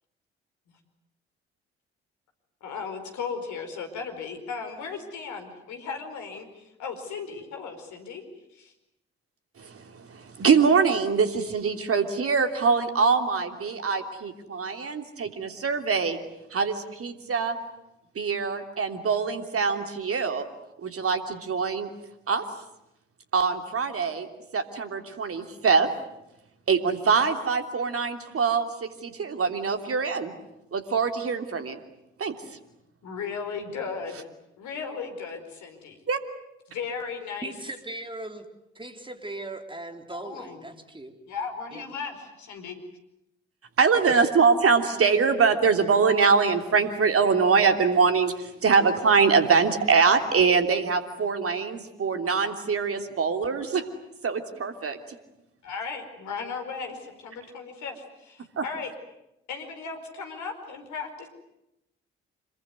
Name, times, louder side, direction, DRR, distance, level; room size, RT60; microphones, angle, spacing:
voice 1, 2.6-8.2 8.5-8.7 33.0-34.3 34.6-36.0 36.7-37.5 40.1-40.7 41.3-42.7 55.6-58.9 59.5-61.3, left 5 dB, 65° left, 6 dB, 4.8 m, -36 dB
voice 2, 9.6-16.2 16.5-17.5 18.1-20.4 20.8-21.9 22.3-22.4 23.3-24.3 24.5-25.9 26.7-30.3 30.7-31.8 32.2-32.3 36.1-36.2 43.8-53.9 54.2-55.0 58.6-58.7, right 5 dB, 45° right, 6 dB, 3.2 m, -23 dB
voice 3, 37.4-38.5 38.7-41.1 41.7-41.9 44.2-44.3, right 2 dB, 15° right, 5 dB, 4.0 m, -38 dB
26.5 x 22.5 x 9.5 m, 0.88 s
figure-of-eight pair, 40°, 32 cm